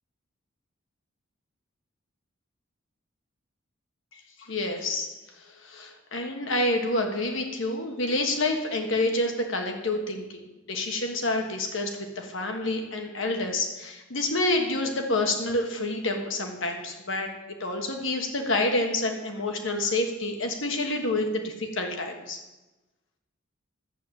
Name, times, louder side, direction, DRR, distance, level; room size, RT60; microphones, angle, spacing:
voice 1, 4.4-5.2 5.6-10.4 10.7-22.4, left 2 dB, 70° left, 4 dB, 1.6 m, -28 dB
12.0 x 7.5 x 8.8 m, 1.1 s
head